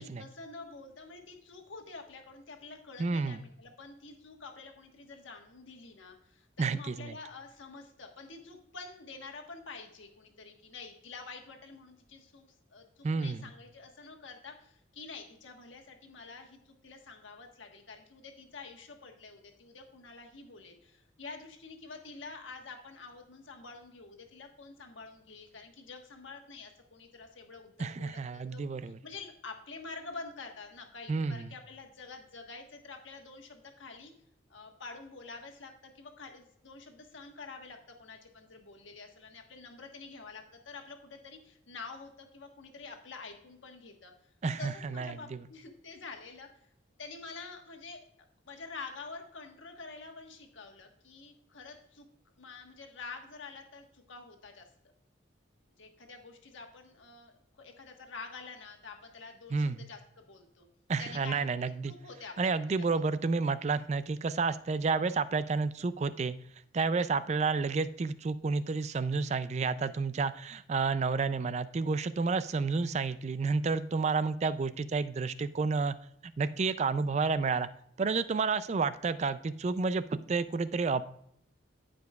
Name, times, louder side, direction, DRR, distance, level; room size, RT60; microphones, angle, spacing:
voice 1, 0.0-34.1 34.5-44.1 44.6-46.5 47.0-48.0 48.5-52.1 52.4-54.9 55.8-60.7 61.0-63.0, left 4 dB, 80° left, 3 dB, 1.3 m, -48 dB
voice 2, 3.0-3.4 6.6-7.1 13.0-13.4 27.8-29.0 31.1-31.5 44.4-45.4 59.5-59.8 60.9-61.9 62.4-66.4 66.7-76.0 76.4-77.7 78.0-81.1, right 4 dB, 35° right, 14 dB, 0.3 m, -30 dB
14.0 x 5.1 x 2.3 m, 0.72 s
head